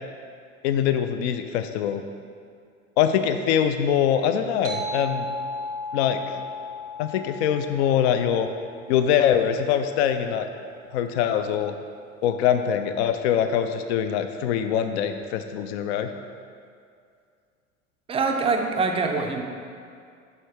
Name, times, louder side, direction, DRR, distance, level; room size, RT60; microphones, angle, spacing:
voice 1, 0.6-2.0 3.0-5.3 5.9-6.2 7.0-8.5 8.9-10.5 10.9-11.7 12.2-16.1, left 9 dB, 55° left, 8 dB, 0.5 m, -23 dB
sound 1, 4.6-9.6, left 1 dB, 70° right, 1.0 m, -35 dB
voice 2, 18.1-19.4, right 4 dB, 15° right, 3 dB, 0.4 m, -24 dB
6.5 x 4.6 x 4.5 m, 2.3 s
figure-of-eight pair, 80°, 41 cm